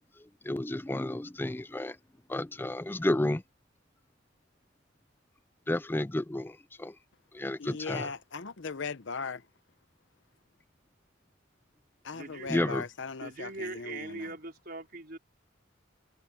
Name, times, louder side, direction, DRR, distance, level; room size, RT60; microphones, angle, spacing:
voice 1, 0.2-2.0 2.3-3.4 5.7-7.0 7.3-8.1 12.5-12.8, left 1 dB, 10° left, 0.4 m, -31 dB
voice 2, 7.6-9.4 12.0-14.3, left 5 dB, 60° left, 0.8 m, -38 dB
voice 3, 12.1-12.7 13.2-15.2, right 2 dB, 45° right, 4.8 m, -41 dB
head